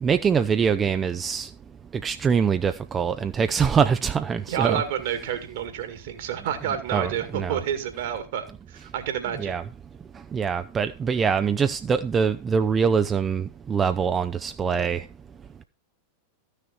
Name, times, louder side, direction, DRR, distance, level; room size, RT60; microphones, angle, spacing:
voice 1, 0.0-1.5 2.0-4.8 6.9-7.6 9.4-9.6 10.3-15.0, right 6 dB, 20° right, 0.5 m, -24 dB
voice 2, 4.5-9.6, right 9 dB, 55° right, 2.1 m, -29 dB
13.5 x 6.5 x 4.5 m
figure-of-eight pair, 90°, 0 cm